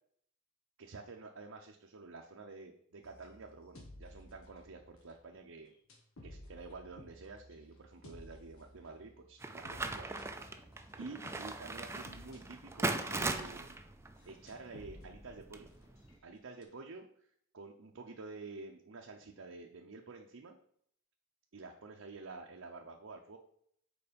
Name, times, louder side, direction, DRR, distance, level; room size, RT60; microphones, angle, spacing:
voice 1, 0.8-5.7 6.2-10.1 11.0-13.8 14.3-15.7 16.2-17.3 17.5-20.6 21.5-23.4, right 3 dB, 75° right, 1 dB, 0.7 m, -49 dB
sound 1, 3.0-5.3 5.9-16.2 16.6-16.7, left 1 dB, 90° left, 1.5 m, -56 dB
sound 2, 9.4-16.2, right 2 dB, 15° right, 0.4 m, -40 dB
7.0 x 4.5 x 5.2 m, 0.66 s
head